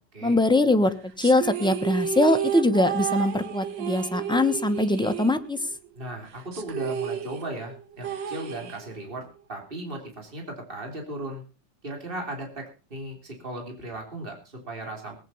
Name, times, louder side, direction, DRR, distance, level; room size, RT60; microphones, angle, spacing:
voice 1, 0.2-5.6, left 2 dB, 5° left, 8 dB, 0.7 m, -22 dB
sound 1, 1.2-5.9 6.1-6.2 6.5-9.2, right 9 dB, 85° right, 2.0 m, -32 dB
voice 2, 5.9-11.4 11.8-15.2, right 1 dB, 30° right, 2 dB, 3.5 m, -36 dB
18.5 x 9.2 x 5.6 m, 0.36 s
omnidirectional pair, 1.9 m